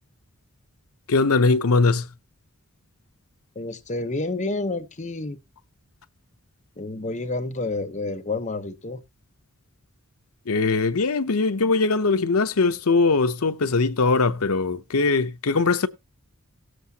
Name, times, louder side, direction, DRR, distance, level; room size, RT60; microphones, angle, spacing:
voice 1, 1.1-2.1 10.5-15.9, left 3 dB, 80° left, 0.8 m, -21 dB
voice 2, 3.5-5.4 6.8-9.0, left 2 dB, 35° left, 0.9 m, -29 dB
18.0 x 7.7 x 2.8 m
head